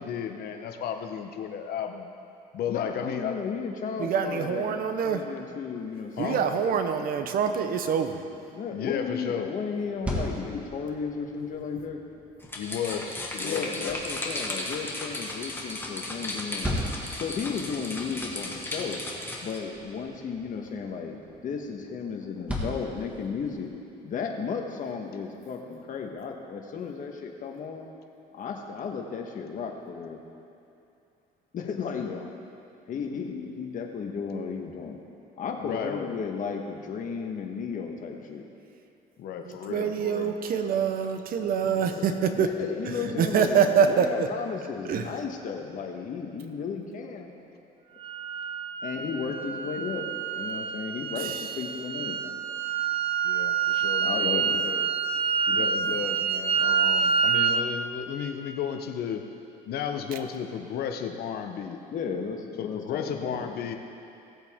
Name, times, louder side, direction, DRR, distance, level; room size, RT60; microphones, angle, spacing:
voice 1, 0.0-2.1 2.5-3.4 6.2-6.4 8.7-9.5 12.6-14.0 32.0-32.3 35.6-36.2 39.2-40.4 41.7-42.2 42.9-43.3 53.2-54.9 55.5-59.2 59.7-61.8 62.6-63.7, left 8 dB, 65° left, 6 dB, 0.9 m, -34 dB
voice 2, 2.7-6.8 8.5-12.0 13.4-16.8 17.2-19.0 19.4-23.7 24.0-27.9 28.3-30.2 31.5-32.1 32.9-35.0 35.4-38.4 41.8-41.9 42.3-47.3 48.8-52.4 54.0-54.6 55.5-56.0 61.9-63.5, left 5 dB, 50° left, 2 dB, 1.4 m, -34 dB
voice 3, 4.0-5.2 6.2-8.2 39.5-42.5 43.2-44.3 44.9-45.0 51.2-51.3, right 7 dB, 60° right, 7 dB, 0.9 m, -25 dB
sound 1, 9.8-23.7, equal, 5° right, 1.9 m, -39 dB
sound 2, 12.4-19.6, left 1 dB, 15° left, 1.5 m, -35 dB
sound 3, 48.0-57.7, right 6 dB, 35° right, 0.5 m, -27 dB
17.5 x 8.0 x 3.6 m, 2.7 s
cardioid pair, 110°, 17 cm